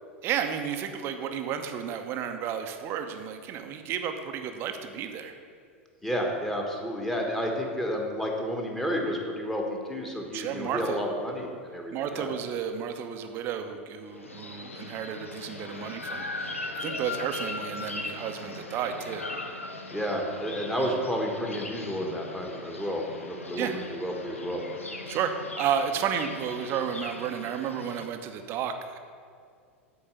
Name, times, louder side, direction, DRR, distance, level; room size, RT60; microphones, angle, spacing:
voice 1, 0.2-5.3 10.3-11.0 11.9-19.3 20.8-21.0 23.5-23.9 25.1-29.0, right 8 dB, 35° right, 7 dB, 0.7 m, -32 dB
voice 2, 6.0-12.3 19.9-24.6, equal, 5° left, 0 dB, 1.3 m, -31 dB
sound 1, 14.1-28.1, left 2 dB, 80° left, 0.7 m, -39 dB
8.5 x 4.8 x 6.8 m, 2.2 s
figure-of-eight pair, 90°, 7 cm